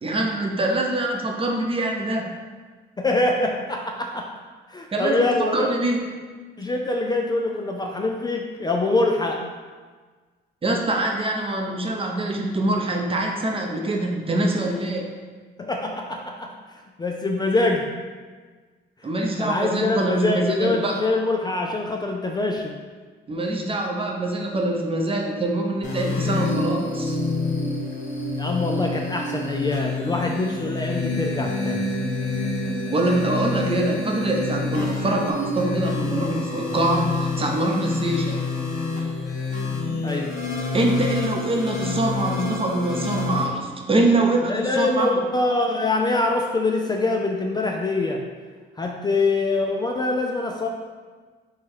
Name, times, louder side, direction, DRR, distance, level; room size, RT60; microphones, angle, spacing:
voice 1, 0.0-2.3 4.9-6.0 10.6-15.0 19.0-20.9 23.3-27.2 32.9-38.4 40.7-45.1, right 2 dB, 30° right, 1 dB, 0.7 m, -24 dB
voice 2, 3.0-4.3 4.7-5.7 6.6-9.4 15.6-16.5 17.0-17.9 19.2-22.7 28.4-31.9 40.0-40.4 44.4-48.2 48.8-50.7, left 2 dB, 20° left, 1 dB, 0.4 m, -24 dB
sound 1, 25.8-43.4, left 3 dB, 40° left, 1.0 m, -27 dB
4.8 x 2.3 x 4.3 m, 1.5 s
cardioid pair, 90°, 20 cm